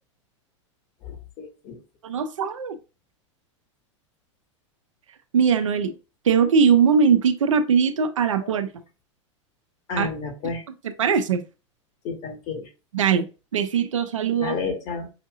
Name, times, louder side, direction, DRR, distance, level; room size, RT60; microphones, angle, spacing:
voice 1, 1.0-1.7 8.4-8.5 9.9-10.6 12.0-12.7 14.4-15.1, left 4 dB, 50° left, 1.7 m, -31 dB
voice 2, 2.0-2.8 5.3-5.9 6.2-8.7 10.0-10.1 11.0-11.4 12.9-13.3 13.5-14.6, right 6 dB, 85° right, 0.7 m, -20 dB
5.8 x 2.7 x 2.4 m
hypercardioid pair, 100°, 16 cm